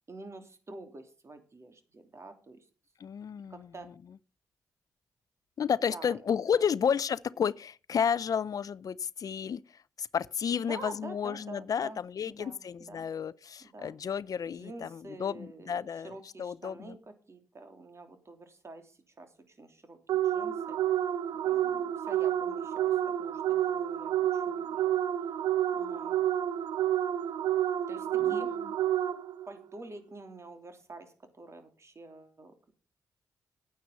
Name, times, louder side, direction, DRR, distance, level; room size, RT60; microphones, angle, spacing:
voice 1, 0.1-2.6 3.5-3.9 5.9-6.2 6.5-6.6 10.7-12.0 12.2-13.1 13.6-14.0 14.5-17.0 17.3-21.1 21.4-25.0 25.7-26.2 27.9-28.5 29.5-32.7, right 2 dB, 40° right, 3.1 m, -48 dB
voice 2, 3.0-3.7 5.6-17.0 28.2-28.7, left 7 dB, 60° left, 0.5 m, -32 dB
sound 1, 20.1-29.5, right 11 dB, 80° right, 0.8 m, -29 dB
9.5 x 9.5 x 5.7 m
supercardioid pair, 50°, 7 cm